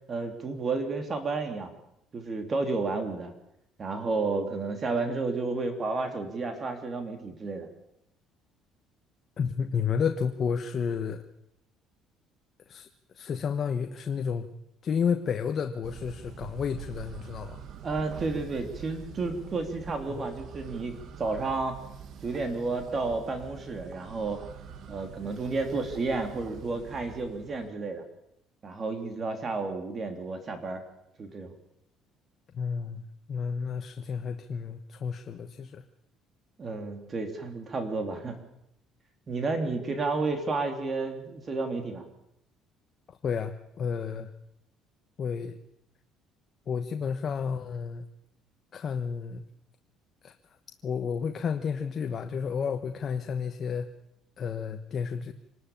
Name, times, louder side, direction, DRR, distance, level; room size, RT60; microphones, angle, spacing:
voice 1, 0.1-1.7 2.1-3.3 3.8-7.7 17.8-21.8 22.2-24.4 24.9-28.0 28.6-30.8 31.2-31.5 36.6-38.4 39.3-42.0, right 3 dB, 30° right, 6 dB, 3.3 m, -31 dB
voice 2, 9.4-11.2 12.7-12.9 13.1-14.5 14.8-17.6 20.1-20.3 32.5-33.0 33.3-35.8 43.1-44.3 45.2-45.6 46.7-48.0 48.7-49.4 50.2-50.3 50.8-53.9 54.4-55.3, left 6 dB, 40° left, 7 dB, 1.2 m, -31 dB
sound 1, 15.8-27.7, right 7 dB, 55° right, 1.7 m, -45 dB
26.0 x 13.0 x 8.7 m, 0.79 s
cardioid pair, 120°, 0 cm